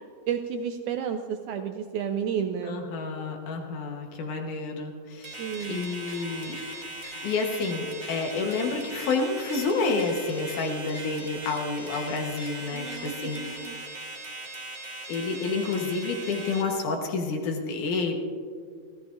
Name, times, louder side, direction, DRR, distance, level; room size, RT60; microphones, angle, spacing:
voice 1, 0.3-2.8 5.4-5.8 12.7-13.8, right 8 dB, 85° right, 7 dB, 1.7 m, -31 dB
voice 2, 2.6-5.4 5.7-6.6 7.2-13.4 15.1-18.2, left 4 dB, 65° left, 2 dB, 2.6 m, -29 dB
sound 1, 5.2-16.6, right 2 dB, 25° right, 1.2 m, -40 dB
sound 2, 5.5-13.8, equal, 30° left, 1.0 m, -46 dB
29.5 x 14.5 x 2.6 m, 2.2 s
omnidirectional pair, 4.1 m